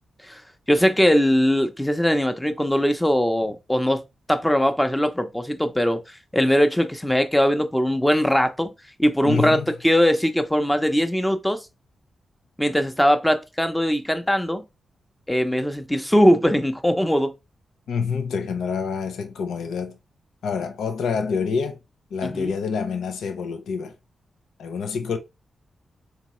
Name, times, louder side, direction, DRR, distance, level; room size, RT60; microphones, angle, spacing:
voice 1, 0.7-4.0 4.3-8.7 9.0-11.7 12.6-14.6 15.3-17.3 22.2-22.5, equal, 10° left, 0.8 m, -21 dB
voice 2, 9.2-9.7 17.9-20.0 20.4-21.8 22.1-23.9 24.6-25.2, left 5 dB, 80° left, 0.6 m, -27 dB
3.6 x 3.0 x 3.1 m
supercardioid pair, 40°, 0 cm